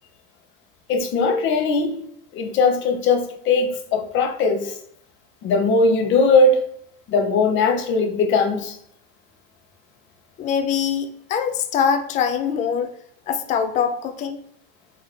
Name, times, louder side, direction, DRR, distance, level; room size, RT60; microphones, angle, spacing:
voice 1, 0.9-2.1 2.3-4.7 5.4-6.6 7.1-8.8, left 3 dB, 40° left, 0.7 m, -19 dB
voice 2, 10.4-12.9 13.3-14.4, left 7 dB, 25° left, 0.4 m, -23 dB
3.7 x 2.9 x 3.2 m
hypercardioid pair, 105°, 29 cm